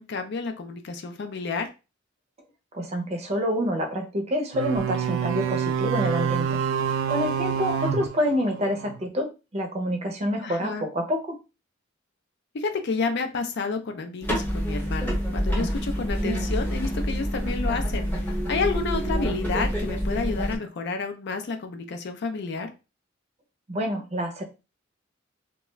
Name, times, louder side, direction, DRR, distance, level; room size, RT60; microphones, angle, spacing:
voice 1, 0.0-1.7 10.4-10.9 12.5-22.7, left 4 dB, 60° left, 6 dB, 0.4 m, -30 dB
voice 2, 2.7-6.6 7.1-11.4 23.7-24.4, equal, 35° right, 3 dB, 0.6 m, -27 dB
sound 1, 4.5-9.0, right 7 dB, 75° right, 0.3 m, -27 dB
sound 2, 14.2-20.6, equal, 10° left, 0.7 m, -27 dB
2.3 x 2.2 x 3.0 m, 0.30 s
head